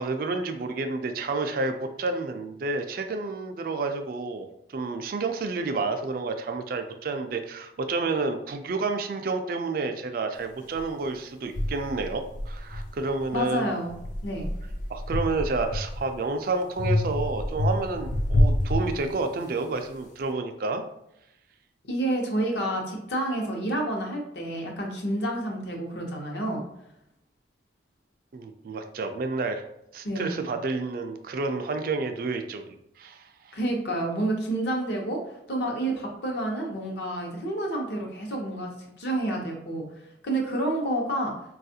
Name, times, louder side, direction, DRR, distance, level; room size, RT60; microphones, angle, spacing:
voice 1, 0.0-13.7 14.9-20.8 28.3-29.6 29.9-32.6 33.0-33.6, right 3 dB, 50° right, 6 dB, 0.3 m, -30 dB
sound 1, 10.7-10.8 11.5-13.4 13.9-16.2 16.8-19.6, left 1 dB, 45° left, 0.4 m, -27 dB
voice 2, 13.3-14.0 14.2-14.5 21.9-26.6 30.0-30.5 33.5-35.2 35.5-38.7 39.0-39.8 40.2-41.3, right 1 dB, 65° left, 0 dB, 0.8 m, -29 dB
4.1 x 2.3 x 2.7 m, 0.82 s
head